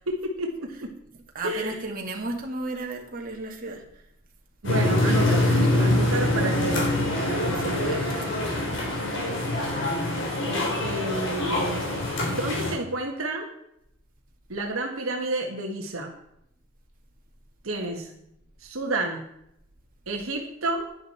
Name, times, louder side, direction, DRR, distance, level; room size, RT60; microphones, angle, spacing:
voice 1, 0.1-1.0 1.4-1.8 4.6-5.5 5.8-7.0 7.2-8.0 10.5-11.9 12.3-13.5 14.5-16.1 17.6-18.1 18.6-19.2 20.1-20.9, right 2 dB, 75° right, 2 dB, 1.6 m, -30 dB
voice 2, 1.3-3.8 5.4-5.8 7.6-8.3 8.9-9.4 17.9-18.1, right 2 dB, 40° right, 1 dB, 2.2 m, -35 dB
sound 1, 4.6-12.7, left 1 dB, 60° left, 3.7 m, -24 dB
11.0 x 10.5 x 4.4 m, 0.77 s
head